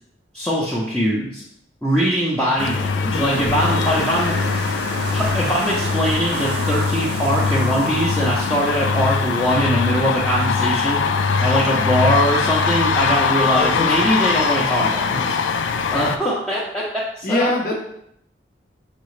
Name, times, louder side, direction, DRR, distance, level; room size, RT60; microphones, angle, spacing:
voice 1, 0.3-1.4 1.8-4.4 5.1-11.0 11.4-15.0 15.9-16.8 17.2-17.7, equal, 5° left, -7 dB, 0.6 m, -21 dB
sound 1, 2.6-16.2, left 5 dB, 85° left, 0.4 m, -21 dB
voice 2, 3.1-3.4 13.5-14.1 14.8-15.2 17.2-17.7, left 2 dB, 50° left, -2 dB, 0.8 m, -24 dB
sound 2, 3.1-9.5, right 3 dB, 60° right, 0.5 m, -32 dB
6.0 x 2.8 x 3.2 m, 0.75 s
head